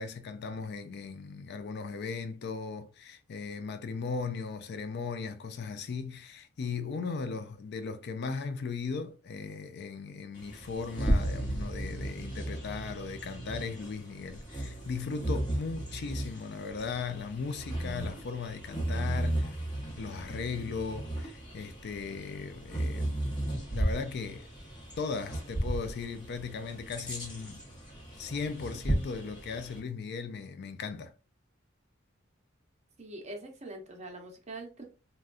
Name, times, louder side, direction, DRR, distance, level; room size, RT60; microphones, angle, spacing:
voice 1, 0.0-19.6 20.0-23.3 23.7-24.5 25.0-27.6 28.2-31.1, left 5 dB, 55° left, 0.4 m, -37 dB
Bird vocalization bird call bird song, 10.3-29.8, right 1 dB, 25° left, 1.0 m, -35 dB
voice 2, 33.0-34.8, right 2 dB, 35° right, 0.8 m, -43 dB
3.5 x 2.2 x 2.4 m
head